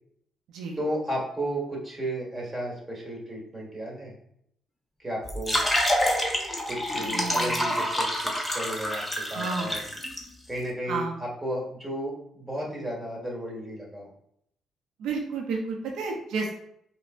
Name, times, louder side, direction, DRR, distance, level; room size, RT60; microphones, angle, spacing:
voice 1, 0.8-4.1 5.0-5.6 6.7-9.8 10.5-14.1, right 1 dB, 10° right, -4 dB, 1.4 m, -33 dB
sound 1, 5.2-10.2, equal, 15° left, 0.7 m, -27 dB
voice 2, 6.9-7.6 9.2-9.8 10.9-11.1 15.0-16.5, right 4 dB, 85° right, 0 dB, 0.5 m, -31 dB
5.1 x 2.0 x 2.4 m, 0.72 s
cardioid pair, 90°, 0 cm